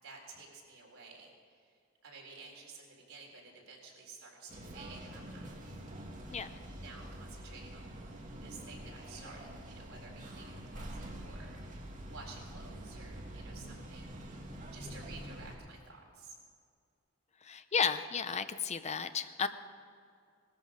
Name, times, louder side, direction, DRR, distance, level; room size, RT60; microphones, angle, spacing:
voice 1, 0.0-5.5 6.8-14.4 14.7-16.4, right 4 dB, 80° right, -1 dB, 3.8 m, -53 dB
Bus driving, 4.5-15.6, right 1 dB, 40° right, 1.9 m, -46 dB
voice 2, 17.4-19.5, left 6 dB, 35° left, 10 dB, 0.6 m, -33 dB
18.5 x 13.5 x 5.0 m, 2.2 s
head